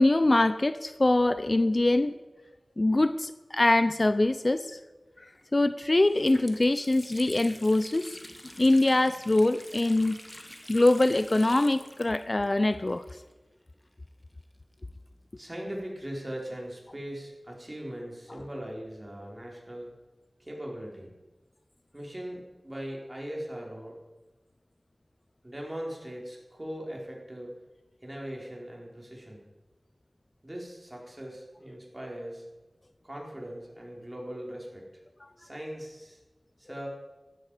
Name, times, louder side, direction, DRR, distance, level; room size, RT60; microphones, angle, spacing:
voice 1, 0.0-2.1 2.8-4.8 5.2-8.2 8.6-10.2 10.7-13.0, left 2 dB, 45° left, 12 dB, 0.6 m, -23 dB
Water tap faucet, 5.3-5.4 5.8-13.6 13.8-13.9 14.7-16.3, left 1 dB, 20° left, 1.6 m, -48 dB
voice 2, 15.4-19.9 20.4-21.1 21.9-24.0 25.4-27.6 28.0-29.5 30.4-32.4 33.0-35.0 35.4-36.2 36.6-36.9, equal, 25° right, -2 dB, 4.9 m, -40 dB
15.5 x 13.0 x 5.1 m, 1.1 s
wide cardioid pair, 45°, 0 cm